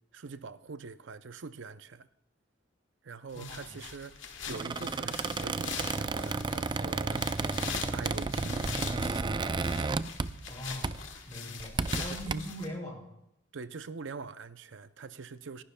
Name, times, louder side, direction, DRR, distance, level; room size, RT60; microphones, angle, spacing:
voice 1, 0.1-2.1 3.0-7.3 7.9-8.7 11.9-12.4 13.5-15.6, right 4 dB, 70° right, 0.6 m, -44 dB
sound 1, 3.3-12.7, left 6 dB, 80° left, 1.4 m, -42 dB
voice 2, 3.3-3.8 10.5-13.1, equal, 20° left, 6.7 m, -41 dB
Squeak, 4.5-10.6 10.8-11.1 11.6-12.3, right 3 dB, 25° right, 0.4 m, -32 dB
28.5 x 11.5 x 2.3 m
head